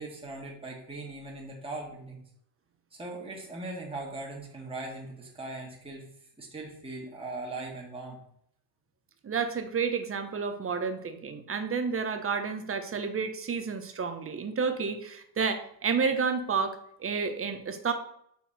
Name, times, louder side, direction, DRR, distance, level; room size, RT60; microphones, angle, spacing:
voice 1, 0.0-2.2 2.9-6.1 6.4-8.2, right 2 dB, 10° right, -2 dB, 1.8 m, -39 dB
voice 2, 9.2-17.9, right 5 dB, 25° right, 8 dB, 1.0 m, -30 dB
5.7 x 4.1 x 4.3 m, 0.71 s
supercardioid pair, 85°, 49 cm